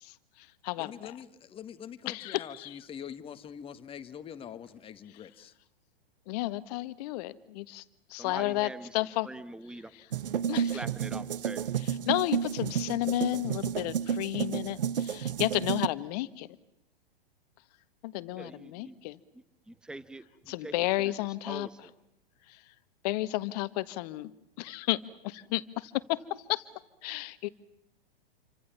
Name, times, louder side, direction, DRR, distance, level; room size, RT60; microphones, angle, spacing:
voice 1, 0.0-1.1 2.1-2.7 6.3-7.8 8.1-9.3 10.5-10.8 12.1-16.5 18.0-19.2 20.5-21.7 22.5-22.6 23.0-24.3 24.6-26.6 27.0-27.5, left 18 dB, 45° left, 15 dB, 1.6 m, -32 dB
voice 2, 0.8-5.5, left 8 dB, 20° left, 10 dB, 1.8 m, -44 dB
voice 3, 8.1-9.0 9.2-9.9 10.5-11.8 18.3-19.0 19.3-20.7 21.0-21.1 21.5-21.9, right 2 dB, 5° right, 15 dB, 1.1 m, -44 dB
sound 1, 10.1-15.9, right 8 dB, 70° right, 1.3 m, -31 dB
29.0 x 25.0 x 7.3 m, 0.87 s
figure-of-eight pair, 110°, 29 cm